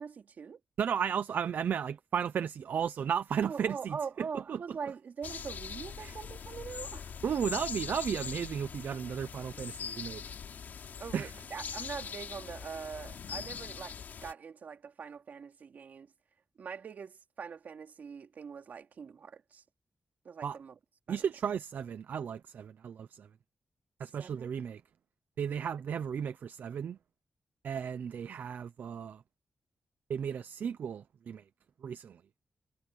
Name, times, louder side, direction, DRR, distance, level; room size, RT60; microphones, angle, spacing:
voice 1, 0.0-0.6 3.5-7.2 11.0-16.1 16.6-19.6 20.2-20.8 21.1-21.2 24.0-24.5, right 6 dB, 65° right, 3.4 m, -43 dB
voice 2, 0.8-4.6 6.0-6.2 7.2-10.2 11.1-11.3 20.4-20.6 21.1-23.3 24.0-24.8 25.4-27.0 27.6-29.2 30.1-31.4 31.8-32.2, right 8 dB, 80° right, 0.7 m, -34 dB
sound 1, 5.2-14.3, left 7 dB, 75° left, 3.4 m, -42 dB
wide cardioid pair, 145°, 3 cm